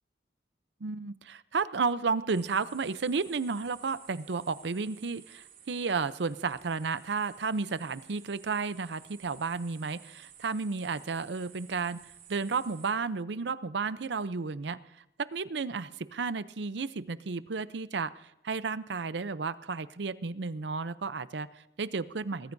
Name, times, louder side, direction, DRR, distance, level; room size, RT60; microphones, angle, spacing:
voice 1, 0.8-12.0 12.3-14.8 15.2-22.5, right 4 dB, 75° right, 16 dB, 0.6 m, -32 dB
sound 1, 2.3-12.9, right 9 dB, 55° right, 4.5 m, -54 dB
21.5 x 14.0 x 2.7 m, 0.88 s
head